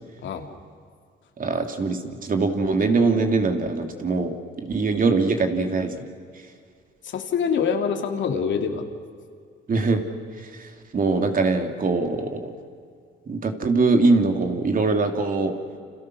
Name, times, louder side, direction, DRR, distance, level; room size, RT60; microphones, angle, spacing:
voice 1, 1.4-6.1 9.7-10.0 10.4-10.7 10.9-12.5 13.3-15.5, right 3 dB, 45° right, 5 dB, 3.1 m, -22 dB
voice 2, 7.0-8.8, left 6 dB, 70° left, 5 dB, 2.8 m, -25 dB
29.5 x 27.5 x 6.4 m, 2.2 s
cardioid pair, 90°, 20 cm